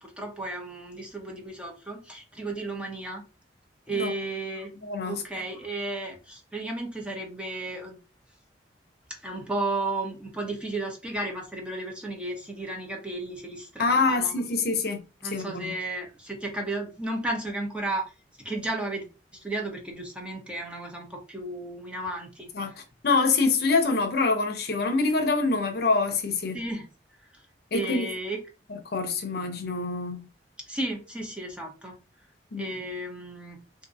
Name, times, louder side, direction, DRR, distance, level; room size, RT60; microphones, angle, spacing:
voice 1, 0.0-3.2 3.9-4.7 5.1-8.0 9.1-14.3 15.2-18.1 18.4-19.0 19.3-22.5 26.5-26.9 27.7-28.4 30.7-32.0 32.6-33.6, right 2 dB, 5° right, 0.8 m, -33 dB
voice 2, 4.8-5.2 13.8-15.0 15.2-15.7 22.5-26.6 27.7-28.1 28.7-30.3 32.5-32.7, left 3 dB, 60° left, 0.7 m, -25 dB
3.7 x 2.6 x 2.6 m
head